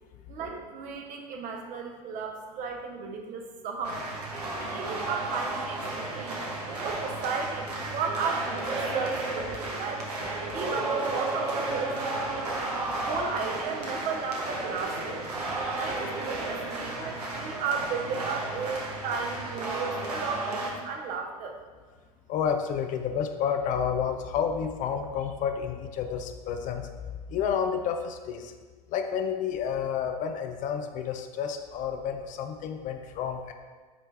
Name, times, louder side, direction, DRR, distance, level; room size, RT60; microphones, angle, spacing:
voice 1, 0.3-4.1 4.6-10.1 10.5-12.0 13.0-15.2 15.7-21.6, right 5 dB, 40° right, 3 dB, 0.9 m, -34 dB
sound 1, 3.8-20.7, right 2 dB, 80° right, 1.2 m, -33 dB
voice 2, 22.3-27.0 27.3-28.5 28.9-33.5, left 7 dB, 40° left, 6 dB, 0.6 m, -30 dB
9.0 x 3.3 x 3.4 m, 1.4 s
figure-of-eight pair, 80°, 20 cm